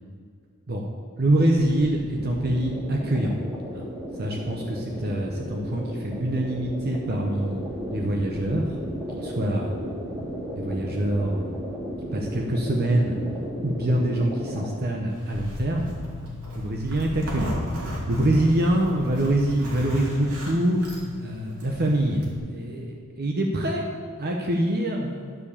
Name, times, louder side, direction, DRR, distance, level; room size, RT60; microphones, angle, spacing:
voice 1, 1.2-3.3 3.7-7.6 7.9-8.8 9.1-9.7 10.5-11.5 12.1-13.2 13.6-15.9 16.2-23.9 24.2-25.2, right 1 dB, 45° right, 1 dB, 0.9 m, -25 dB
sound 1, 1.6-14.7, equal, 15° right, 2.2 m, -35 dB
Zipper (clothing), 15.1-22.4, left 2 dB, 90° right, 2.8 m, -35 dB
12.5 x 5.0 x 7.0 m, 2.1 s
head